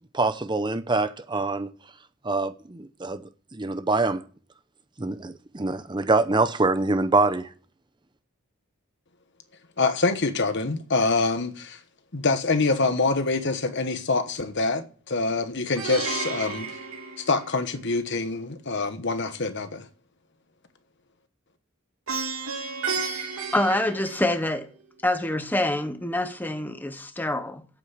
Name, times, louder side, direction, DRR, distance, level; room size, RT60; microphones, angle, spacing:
voice 1, 0.1-1.7 2.2-3.2 3.5-4.2 5.0-7.5, right 3 dB, 20° right, 0.7 m, -24 dB
voice 2, 9.8-11.8 12.1-16.8 17.2-19.9, left 3 dB, 55° left, 1.2 m, -25 dB
Plucked string instrument, 15.8-17.9 22.1-24.7, right 4 dB, 85° right, 2.7 m, -32 dB
voice 3, 23.5-24.7 25.0-27.7, left 1 dB, 10° left, 0.9 m, -26 dB
8.5 x 8.1 x 8.2 m
head